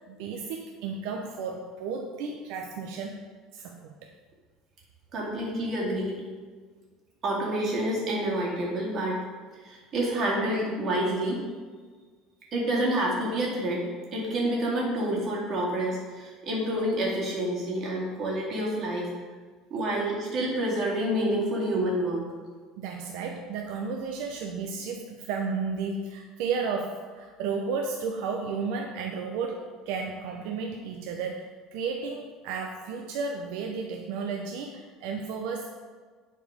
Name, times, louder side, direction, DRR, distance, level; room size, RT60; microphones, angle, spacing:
voice 1, 0.1-3.2 3.5-4.1 22.8-35.8, right 5 dB, 70° right, 2 dB, 0.8 m, -33 dB
voice 2, 5.1-6.2 7.2-9.2 9.6-11.4 12.5-19.1 19.7-22.2, right 1 dB, 35° right, -4 dB, 2.5 m, -28 dB
10.0 x 4.7 x 5.1 m, 1.5 s
cardioid pair, 170°, 0 cm